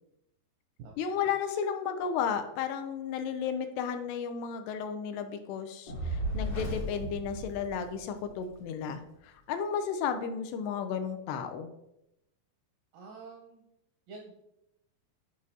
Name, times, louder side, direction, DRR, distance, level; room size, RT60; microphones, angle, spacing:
voice 1, 1.0-11.7, left 7 dB, 80° left, 8 dB, 2.5 m, -33 dB
Fire, 5.9-8.3, right 1 dB, 60° left, 1.6 m, -35 dB
voice 2, 12.9-13.6 14.1-14.3, right 4 dB, 80° right, 0 dB, 2.0 m, -47 dB
9.4 x 4.8 x 2.8 m, 0.83 s
omnidirectional pair, 4.8 m